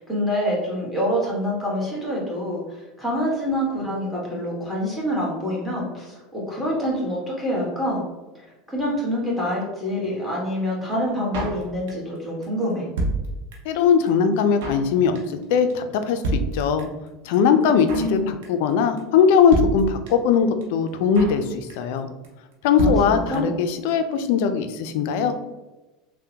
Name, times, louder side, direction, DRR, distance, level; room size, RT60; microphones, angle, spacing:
voice 1, 0.0-8.0 8.3-12.9 17.7-18.4 22.8-23.5, equal, ahead, -4 dB, 1.3 m, -26 dB
Drum kit, 11.3-12.2 12.4-12.5 12.7-13.8 14.1-14.2 14.3-14.9 15.1-15.4 15.7-15.8 16.0-16.1 16.2-17.1 17.3-17.4 17.6-18.2 18.4-18.7 19.0-19.1 19.2-19.3 19.5-20.3 20.6-20.7 20.9-21.4 21.7-22.0 22.2-22.3 22.5-22.6 22.8-23.6 23.9-24.0 24.1-24.2, right 2 dB, 75° right, 0.7 m, -28 dB
voice 2, 13.7-16.9 17.3-22.1 22.6-25.3, left 6 dB, 70° left, 9 dB, 0.3 m, -20 dB
3.5 x 2.1 x 2.7 m, 1.1 s
supercardioid pair, 100°, 0 cm